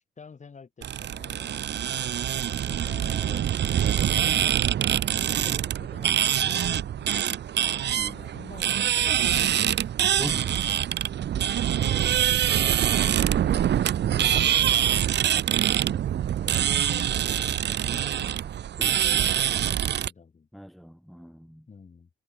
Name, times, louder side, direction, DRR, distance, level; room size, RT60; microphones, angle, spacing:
voice 1, 0.2-2.1 2.6-4.5 5.0-10.0 11.3-15.0 15.7-15.9 16.4-18.6 19.0-20.5 21.7-22.1, left 5 dB, 35° left, 7.9 m, -48 dB
sound 1, 0.8-20.1, right 10 dB, 60° right, 1.3 m, -25 dB
voice 2, 10.2-10.8 15.5-16.0 18.8-19.3 20.5-21.7, equal, ahead, 1.4 m, -41 dB
cardioid pair, 90°, 20 cm